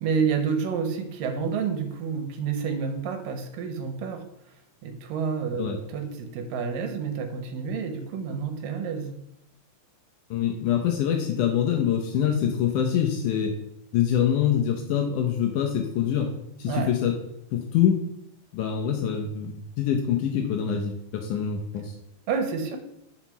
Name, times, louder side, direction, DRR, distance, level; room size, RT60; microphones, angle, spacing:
voice 1, 0.0-4.3 4.8-9.2 16.7-16.9 22.3-22.8, right 6 dB, 75° right, 6 dB, 2.4 m, -29 dB
voice 2, 10.3-13.5 13.9-16.3 16.6-17.1 17.5-18.0 18.5-21.9, left 9 dB, 75° left, 3 dB, 2.0 m, -25 dB
5.7 x 5.6 x 5.9 m, 0.78 s
omnidirectional pair, 4.2 m